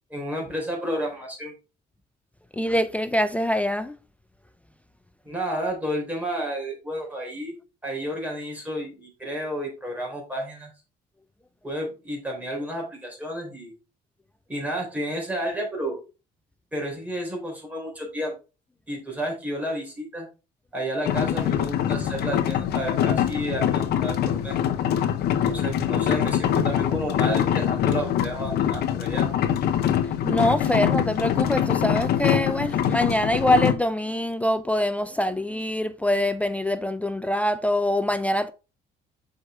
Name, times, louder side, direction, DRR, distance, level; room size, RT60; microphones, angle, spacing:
voice 1, 0.1-1.5 5.2-7.5 7.8-10.7 11.6-13.7 14.5-16.0 16.7-18.3 18.9-20.3 20.7-24.6 25.4-29.3, equal, 10° right, 3.5 m, -31 dB
voice 2, 2.5-4.0 30.2-38.5, left 1 dB, 10° left, 0.4 m, -24 dB
sound 1, 21.1-33.7, left 10 dB, 70° left, 0.8 m, -24 dB
6.4 x 4.8 x 3.3 m
cardioid pair, 110°, 17 cm